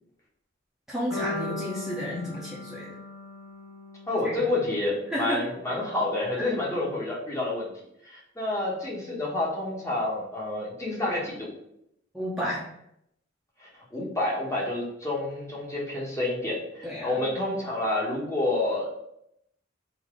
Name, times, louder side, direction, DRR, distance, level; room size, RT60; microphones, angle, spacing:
voice 1, 0.9-3.0 4.2-4.3 5.1-5.4 6.4-6.5 12.1-12.6 16.8-17.2, equal, 5° right, -8 dB, 0.8 m, -32 dB
sound 1, 1.1-5.2, left 2 dB, 75° left, 1.3 m, -38 dB
voice 2, 4.1-7.7 8.0-11.5 13.6-18.9, left 2 dB, 15° left, -4 dB, 1.1 m, -29 dB
3.9 x 2.8 x 4.8 m, 0.78 s
head